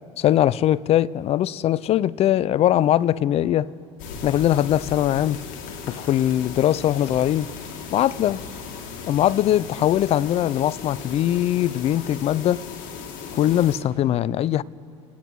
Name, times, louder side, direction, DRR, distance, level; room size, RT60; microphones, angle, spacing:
voice 1, 0.2-3.7 4.2-5.4 5.9-7.5 7.9-8.4 9.1-12.6 13.3-14.6, left 12 dB, 40° left, 0.4 m, -21 dB
sound 1, 4.0-13.8, left 5 dB, 60° left, 2.1 m, -37 dB
28.0 x 9.9 x 4.6 m
hypercardioid pair, 90°, 16 cm